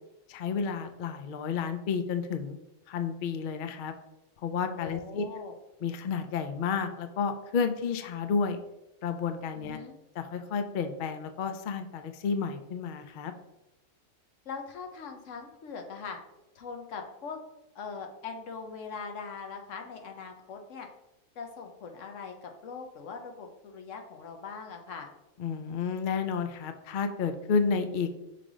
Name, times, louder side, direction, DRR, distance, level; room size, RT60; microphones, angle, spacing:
voice 1, 0.3-2.6 2.9-3.9 4.4-5.2 5.8-8.6 9.0-9.8 10.2-13.3 25.4-28.1, left 5 dB, 90° left, 8 dB, 0.4 m, -31 dB
voice 2, 4.8-5.5 9.5-9.9 14.4-16.2 16.5-17.4 17.7-20.9 21.3-25.1, left 5 dB, 60° left, 4 dB, 1.1 m, -41 dB
5.8 x 3.3 x 4.9 m, 0.93 s
omnidirectional pair, 1.5 m